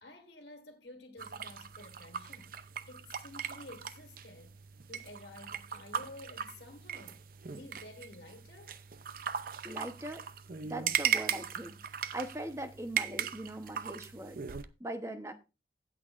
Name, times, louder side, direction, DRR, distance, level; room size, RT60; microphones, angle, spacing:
voice 1, 0.0-2.6 2.9-7.2 7.5-8.8, left 2 dB, 65° left, 1.7 m, -52 dB
sound 1, 1.2-14.6, right 8 dB, 50° right, 0.6 m, -38 dB
voice 2, 9.6-10.3 10.6-11.8 12.1-14.4 14.8-15.3, right 1 dB, 15° right, 1.0 m, -40 dB
16.5 x 6.3 x 2.6 m
head